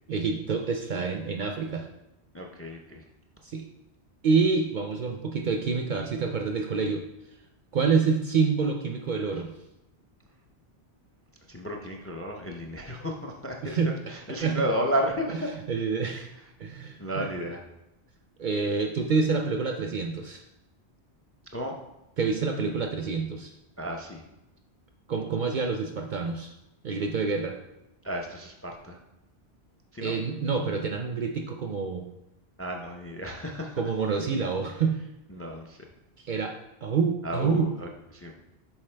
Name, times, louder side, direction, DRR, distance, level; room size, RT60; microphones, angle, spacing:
voice 1, 0.1-1.9 3.4-3.6 4.2-7.0 7.7-9.5 13.6-13.9 14.4-14.6 15.3-16.3 16.6-17.3 18.4-20.4 22.2-23.5 25.1-26.5 26.8-27.5 30.0-32.1 33.8-35.0 36.2-36.6 36.8-37.7, right 5 dB, 55° right, 3 dB, 0.6 m, -27 dB
voice 2, 2.3-3.0 11.5-13.8 14.1-15.5 17.0-17.6 21.5-21.8 23.8-24.2 28.0-29.0 29.9-30.1 32.6-33.8 35.3-35.8 37.2-38.3, equal, 20° left, 2 dB, 0.4 m, -32 dB
7.3 x 4.6 x 3.3 m, 0.90 s
omnidirectional pair, 1.1 m